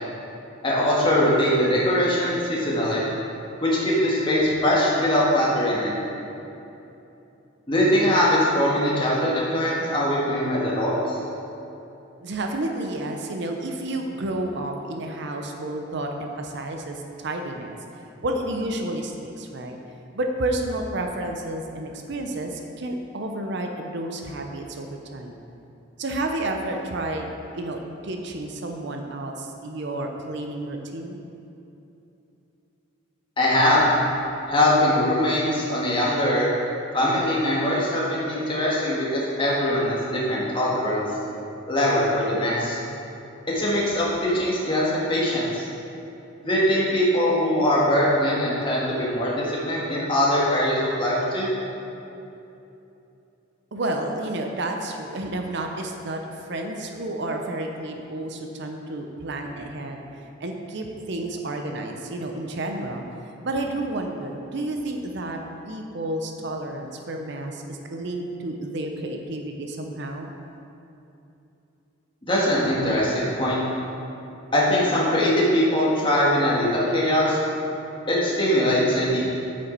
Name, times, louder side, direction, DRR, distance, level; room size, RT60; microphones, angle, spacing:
voice 1, 0.6-3.0 3.6-5.9 7.7-11.2 33.4-33.8 34.5-36.5 36.9-41.0 41.7-42.8 43.5-45.7 46.4-51.5 72.3-73.6 74.5-77.4 78.1-79.2, left 1 dB, 25° left, -6 dB, 1.7 m, -22 dB
voice 2, 12.2-17.8 18.2-19.8 20.1-25.3 26.0-31.2 53.7-60.0 60.4-63.0 63.4-65.4 65.7-70.3, right 1 dB, 60° right, 3 dB, 0.7 m, -30 dB
8.2 x 6.3 x 4.4 m, 2.9 s
head